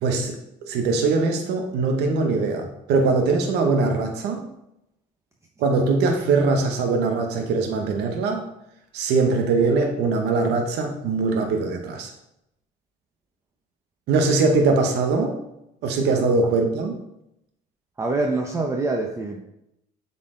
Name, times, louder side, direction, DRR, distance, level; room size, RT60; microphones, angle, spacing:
voice 1, 0.0-0.4 0.7-4.4 5.6-8.5 8.9-12.1 14.1-15.3 15.8-17.0, right 3 dB, 80° right, 3 dB, 1.0 m, -22 dB
voice 2, 18.0-19.4, right 2 dB, 15° right, 2 dB, 0.7 m, -25 dB
7.6 x 4.3 x 3.8 m, 0.82 s
cardioid pair, 110°, 17 cm